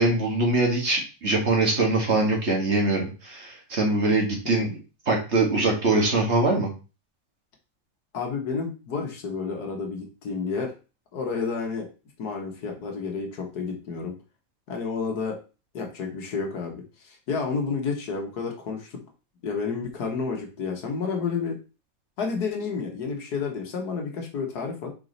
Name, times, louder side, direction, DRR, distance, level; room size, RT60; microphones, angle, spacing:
voice 1, 0.0-4.7 5.1-6.7, right 2 dB, 40° right, 0 dB, 1.8 m, -23 dB
voice 2, 8.1-10.7 11.1-11.9 12.2-14.2 14.7-15.4 15.7-19.0 19.4-21.6 22.2-24.9, left 5 dB, 70° left, 3 dB, 1.7 m, -30 dB
4.9 x 4.8 x 4.0 m, 0.32 s
omnidirectional pair, 1.8 m